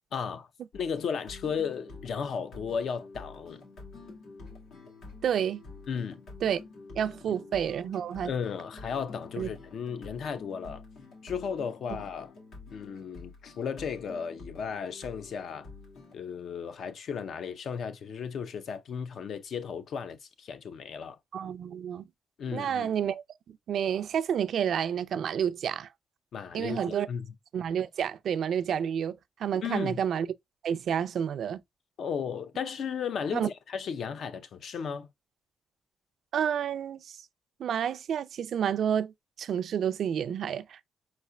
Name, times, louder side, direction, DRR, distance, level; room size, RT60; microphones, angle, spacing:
voice 1, 0.1-0.5 0.7-3.6 5.9-6.2 7.3-7.4 8.2-10.8 11.2-12.3 12.7-15.7 16.1-21.2 22.4-22.9 26.3-27.3 29.6-30.0 32.0-35.1, left 6 dB, 60° left, 0.6 m, -35 dB
sound 1, 0.7-16.1, left 3 dB, 85° left, 2.0 m, -48 dB
voice 2, 5.2-5.6 6.4-6.6 7.0-8.3 9.4-9.5 21.3-22.0 22.5-25.9 26.5-27.1 27.5-30.3 30.6-31.6 33.3-33.5 36.3-37.2 37.6-39.1 39.4-40.9, right 8 dB, 60° right, 0.4 m, -30 dB
4.9 x 4.2 x 2.2 m
cardioid pair, 135°, 0 cm